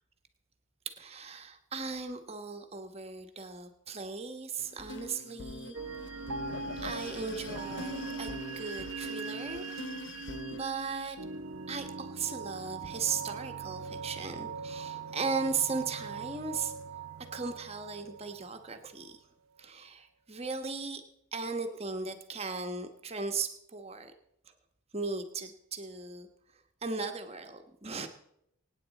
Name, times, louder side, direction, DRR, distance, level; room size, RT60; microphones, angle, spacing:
voice 1, 0.8-6.1 6.8-9.9 10.5-11.2 11.7-16.7 17.3-19.2 19.6-21.0 21.3-24.1 24.5-24.6 24.9-26.3 26.8-28.1, right 4 dB, 30° right, 6 dB, 1.2 m, -37 dB
sound 1, 4.6-10.6, left 2 dB, 55° left, 0.7 m, -43 dB
sound 2, 5.7-19.1, right 5 dB, 85° right, 0.8 m, -41 dB
24.5 x 9.3 x 4.1 m, 0.75 s
head